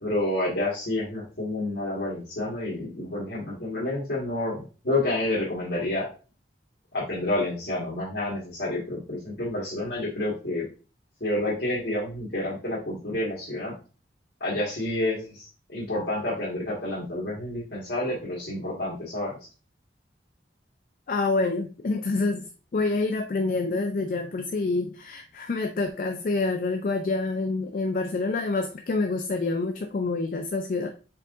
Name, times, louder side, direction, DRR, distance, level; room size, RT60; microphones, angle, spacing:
voice 1, 0.0-6.1 6.9-10.6 11.2-13.7 14.4-19.3, left 1 dB, 65° left, -7 dB, 1.5 m, -29 dB
voice 2, 21.1-22.5 22.7-30.9, left 3 dB, 50° left, 5 dB, 0.3 m, -27 dB
4.5 x 3.8 x 2.4 m, 0.35 s
head